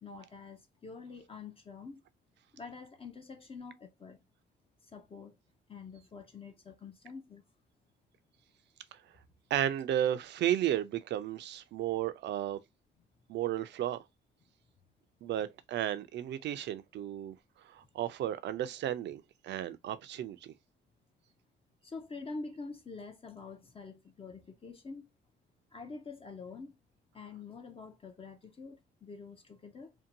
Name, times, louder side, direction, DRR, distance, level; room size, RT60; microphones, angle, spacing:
voice 1, 0.0-2.0 2.5-4.2 4.8-5.4 5.7-7.5 21.8-25.1 25.7-26.8 27.1-29.9, left 4 dB, 30° left, 0.5 m, -46 dB
voice 2, 9.5-12.6 13.3-14.0 15.2-17.3 17.7-20.4, right 11 dB, 65° right, 0.4 m, -33 dB
2.7 x 2.2 x 2.7 m
cardioid pair, 90°, 20 cm